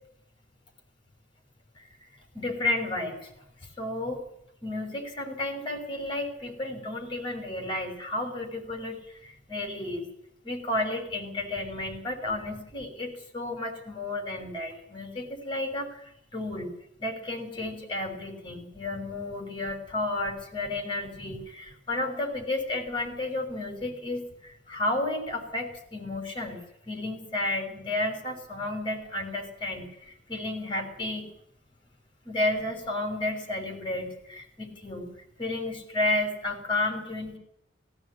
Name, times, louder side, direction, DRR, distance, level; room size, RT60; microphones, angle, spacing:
voice 1, 2.3-3.3 3.8-4.2 4.6-10.1 10.4-16.0 16.3-16.7 17.0-26.6 26.9-31.3 32.2-37.4, left 2 dB, 25° left, 3 dB, 5.9 m, -32 dB
17.0 x 16.5 x 9.9 m, 0.77 s
head